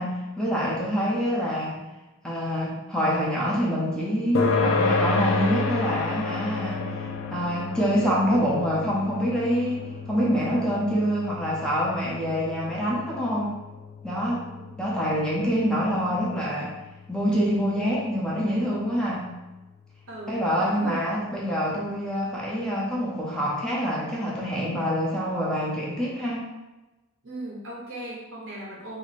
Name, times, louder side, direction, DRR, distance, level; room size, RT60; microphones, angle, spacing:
voice 1, 0.0-1.8 2.2-13.6 14.0-14.4 14.8-16.8 17.1-19.3 20.3-26.4, equal, 5° left, -5 dB, 0.6 m, -26 dB
sound 1, 4.3-19.3, left 4 dB, 70° left, 0.4 m, -31 dB
voice 2, 14.3-14.7 20.1-21.0 27.2-29.0, right 1 dB, 70° right, -4 dB, 1.0 m, -38 dB
3.1 x 2.1 x 4.0 m, 1.1 s
head